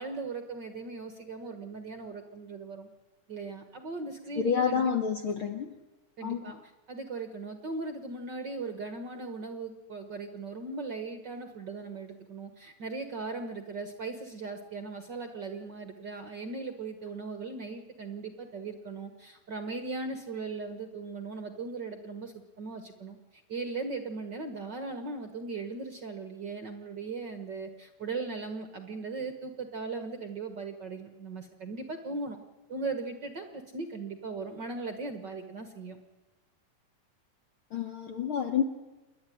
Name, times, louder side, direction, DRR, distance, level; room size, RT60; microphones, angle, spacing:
voice 1, 0.0-2.9 3.3-4.9 6.2-6.6 6.9-32.4 32.7-36.0, right 3 dB, 60° right, 7 dB, 1.1 m, -38 dB
voice 2, 4.4-5.7 6.2-6.6 37.7-38.6, left 7 dB, 70° left, 6 dB, 1.2 m, -29 dB
28.5 x 12.0 x 9.9 m, 1.1 s
omnidirectional pair, 3.8 m